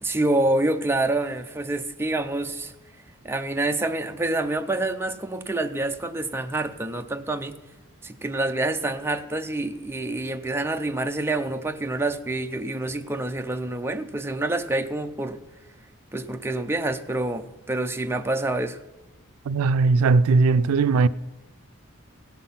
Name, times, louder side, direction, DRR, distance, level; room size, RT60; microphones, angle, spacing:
voice 1, 0.0-2.7 3.2-7.6 8.0-15.4 16.1-18.8, right 2 dB, 10° right, 0.5 m, -27 dB
voice 2, 19.5-21.1, right 4 dB, 85° right, 0.3 m, -19 dB
17.0 x 5.8 x 5.7 m
head